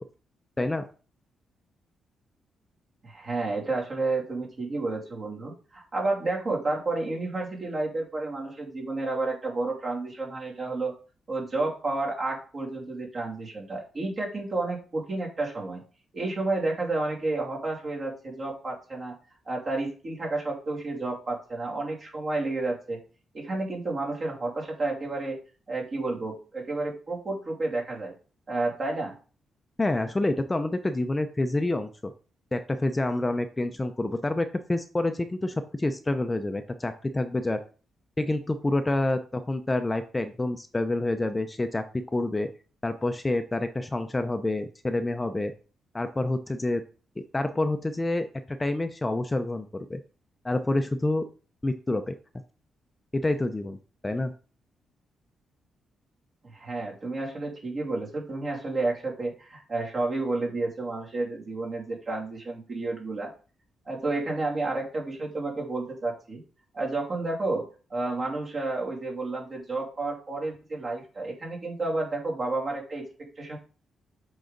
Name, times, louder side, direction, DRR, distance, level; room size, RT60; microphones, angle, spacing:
voice 1, 3.0-10.9 11.3-15.8 16.1-19.1 19.5-23.0 23.3-25.4 25.7-28.1 28.5-29.1 56.4-63.3 63.9-66.4 66.7-73.6, right 2 dB, 45° right, -2 dB, 2.7 m, -31 dB
voice 2, 29.8-32.1 32.5-37.6 38.2-42.5 42.8-45.5 45.9-46.8 47.3-50.0 50.4-51.2 51.6-52.1 53.1-53.8 54.0-54.3, left 2 dB, 20° left, 8 dB, 0.6 m, -28 dB
7.5 x 4.0 x 3.9 m, 0.37 s
cardioid pair, 90°, 0 cm